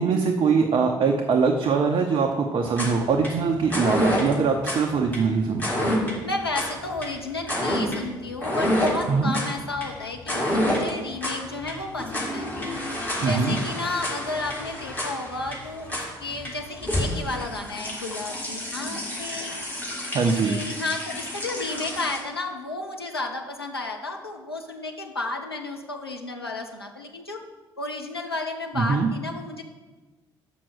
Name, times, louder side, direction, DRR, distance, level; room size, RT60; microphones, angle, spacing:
voice 1, 0.0-6.0 9.1-9.4 13.2-13.6 20.1-20.6 28.8-29.1, right 5 dB, 40° right, 2 dB, 0.7 m, -22 dB
sound 1, 2.7-22.2, left 1 dB, 15° left, 3.0 m, -29 dB
voice 2, 5.3-5.6 6.2-12.5 13.2-19.6 20.2-27.4 27.8-29.6, left 2 dB, 90° left, 2 dB, 0.5 m, -32 dB
6.1 x 6.0 x 6.3 m, 1.2 s
figure-of-eight pair, 50°, 12 cm